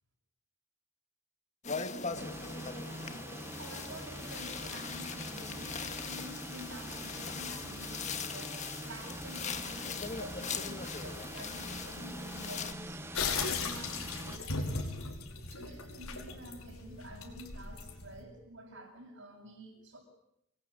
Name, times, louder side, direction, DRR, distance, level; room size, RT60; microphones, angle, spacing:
sound 1, 1.6-12.7, left 5 dB, 30° left, 1.8 m, -41 dB
sound 2, 2.2-14.4, right 1 dB, 10° right, 1.6 m, -44 dB
voice 1, 3.6-8.5 8.8-15.0 15.3-20.0, right 1 dB, 60° right, -3 dB, 7.4 m, -49 dB
sound 3, 13.1-18.2, left 4 dB, 75° left, 5.2 m, -37 dB
28.0 x 21.5 x 8.7 m, 0.80 s
head